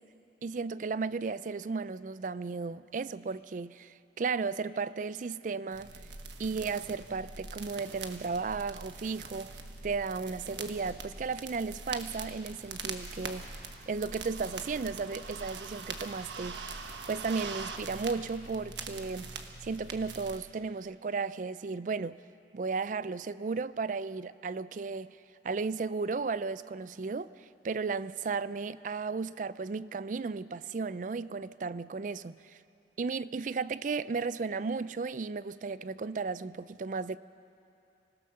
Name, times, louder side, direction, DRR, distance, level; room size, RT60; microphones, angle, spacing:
voice 1, 0.4-5.9 6.4-9.6 9.8-13.5 13.9-16.7 17.1-19.3 19.6-22.2 22.5-25.2 25.4-27.3 27.6-32.6 33.0-37.2, right 4 dB, 45° right, 0.4 m, -34 dB
sound 1, 5.7-20.4, right 4 dB, 80° right, 1.3 m, -43 dB
25.0 x 16.5 x 6.5 m
head